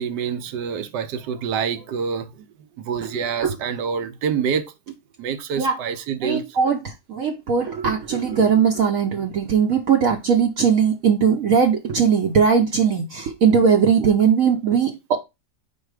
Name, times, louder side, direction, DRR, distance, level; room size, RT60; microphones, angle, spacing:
voice 1, 0.0-2.5 2.8-6.7 14.0-14.1, right 7 dB, 85° right, 1.3 m, -27 dB
voice 2, 6.2-15.2, right 6 dB, 60° right, 1.0 m, -19 dB
4.6 x 4.3 x 4.8 m
omnidirectional pair, 1.8 m